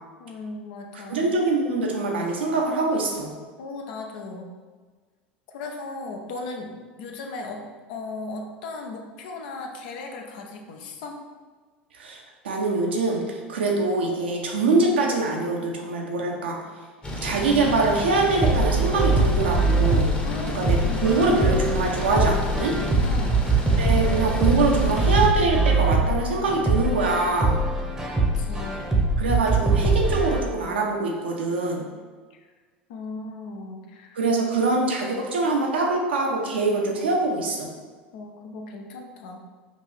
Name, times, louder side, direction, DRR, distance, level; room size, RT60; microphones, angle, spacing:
voice 1, 0.2-1.3 3.6-4.5 5.5-6.7 7.0-7.6 7.9-11.2 20.2-21.1 23.0-23.5 28.2-28.8 32.9-34.2 38.1-39.4, left 3 dB, 60° left, 2 dB, 0.6 m, -37 dB
voice 2, 0.9-3.3 11.9-16.6 17.2-20.1 20.5-22.8 23.8-27.6 29.2-31.8 34.1-37.7, right 3 dB, 75° right, 0 dB, 0.8 m, -24 dB
sound 1, 17.0-25.3, equal, 20° left, 0.9 m, -31 dB
sound 2, 18.4-30.4, right 3 dB, 10° right, 0.8 m, -23 dB
5.3 x 2.6 x 3.3 m, 1.4 s
figure-of-eight pair, 75°, 6 cm